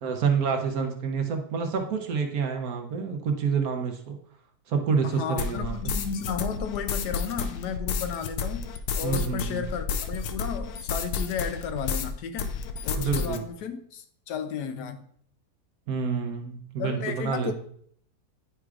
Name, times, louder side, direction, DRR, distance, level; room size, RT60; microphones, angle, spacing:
voice 1, 0.0-4.2 4.7-5.8 9.0-9.6 13.0-13.4 15.9-17.5, right 6 dB, 65° right, 1.3 m, -28 dB
voice 2, 5.0-15.1 16.8-17.5, left 7 dB, 85° left, 1.3 m, -34 dB
sound 1, 5.4-12.1 12.4-13.4, left 5 dB, 70° left, 1.0 m, -31 dB
9.7 x 4.7 x 2.4 m
omnidirectional pair, 1.7 m